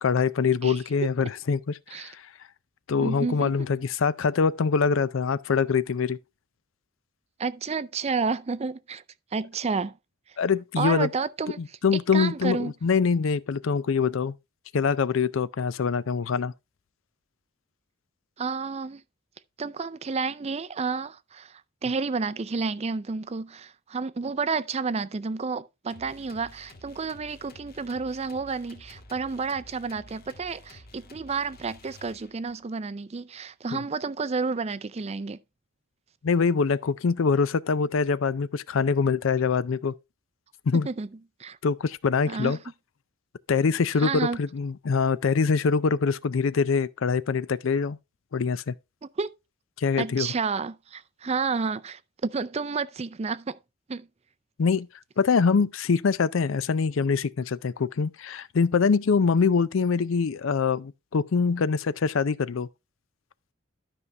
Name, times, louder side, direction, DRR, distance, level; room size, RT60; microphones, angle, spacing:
voice 1, 0.0-2.2 2.9-6.2 10.4-11.1 11.6-14.3 14.7-16.5 36.2-39.9 40.7-40.9 41.6-42.6 43.5-48.0 48.3-48.7 49.8-50.3 54.6-54.9 55.2-62.7, left 5 dB, 70° left, 0.5 m, -24 dB
voice 2, 3.0-3.5 7.4-9.0 9.3-10.0 10.3-10.4 10.8-11.6 12.1-12.7 18.4-19.0 19.6-35.4 40.8-41.1 41.4-41.6 42.3-42.6 44.0-44.4 49.0-49.3 50.0-53.6 53.9-54.1, right 4 dB, 30° right, 0.4 m, -30 dB
sound 1, 25.9-32.6, left 2 dB, 50° left, 1.4 m, -51 dB
12.5 x 5.5 x 3.4 m
head